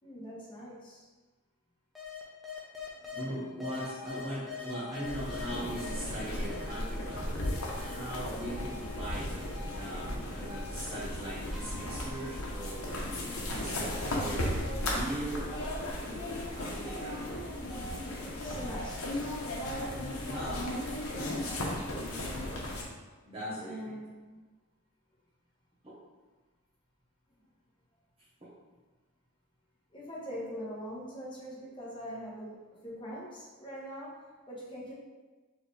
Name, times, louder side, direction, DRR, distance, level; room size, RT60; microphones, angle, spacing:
voice 1, 0.0-1.1 18.4-19.4 23.6-24.5 29.9-34.9, equal, 20° left, -6 dB, 1.1 m, -43 dB
sound 1, 1.9-3.2 3.6-6.0 6.5-9.1 9.4-16.2 16.6-21.6, left 4 dB, ahead, 0.6 m, -46 dB
voice 2, 3.1-7.3 7.8-9.4 9.7-13.1 13.5-17.4 20.3-20.9 21.5-21.6 23.3-24.0 25.8-25.9 28.4-28.5, right 1 dB, 25° right, -10 dB, 0.9 m, -40 dB
sound 2, 5.0-22.8, left 1 dB, 80° left, 0.9 m, -36 dB
4.6 x 3.4 x 3.2 m, 1.3 s
head